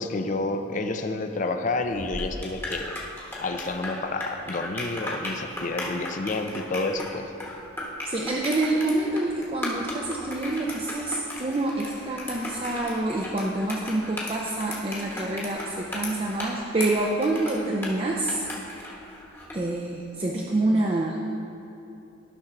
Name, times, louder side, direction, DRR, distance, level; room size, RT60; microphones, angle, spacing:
voice 1, 0.0-3.0 3.4-7.3, left 2 dB, 40° left, 6 dB, 0.4 m, -29 dB
sound 1, 1.9-19.7, left 1 dB, 10° left, 1.1 m, -36 dB
voice 2, 8.0-18.4 19.5-21.3, right 2 dB, 25° right, -2 dB, 0.5 m, -27 dB
12.0 x 5.8 x 3.7 m, 2.8 s
head